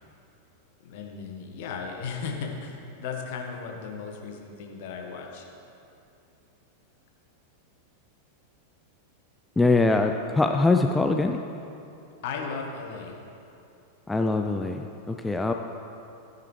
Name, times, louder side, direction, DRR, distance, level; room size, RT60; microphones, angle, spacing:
voice 1, 0.8-5.5 12.2-13.2, left 5 dB, 50° left, 1 dB, 1.3 m, -36 dB
voice 2, 9.6-11.4 14.1-15.5, left 3 dB, 10° left, 5 dB, 0.4 m, -23 dB
15.0 x 9.2 x 3.2 m, 2.7 s
figure-of-eight pair, 90°, 0 cm